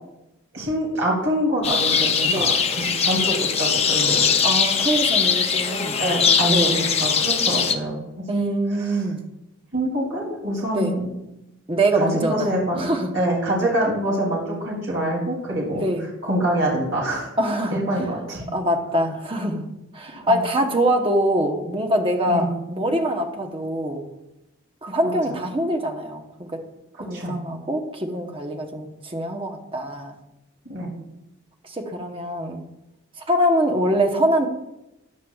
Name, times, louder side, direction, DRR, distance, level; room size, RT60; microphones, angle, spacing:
voice 1, 0.5-4.3 6.0-8.0 9.7-11.1 11.9-12.9 13.1-15.8 16.2-17.3 17.7-18.4 20.2-20.4 22.3-22.5 27.1-27.4 30.6-30.9, right 1 dB, 65° right, -4 dB, 3.0 m, -25 dB
sound 1, 1.6-7.7, left 6 dB, 30° left, 0.5 m, -21 dB
voice 2, 4.4-6.0 6.5-6.7 8.3-9.2 10.7-11.0 11.7-12.5 12.8-13.1 15.7-16.1 17.4-18.0 18.5-19.7 19.9-24.0 24.8-26.6 27.0-30.1 31.6-32.6 33.2-34.5, right 1 dB, 25° right, 3 dB, 1.0 m, -24 dB
14.0 x 9.4 x 2.4 m, 0.92 s
head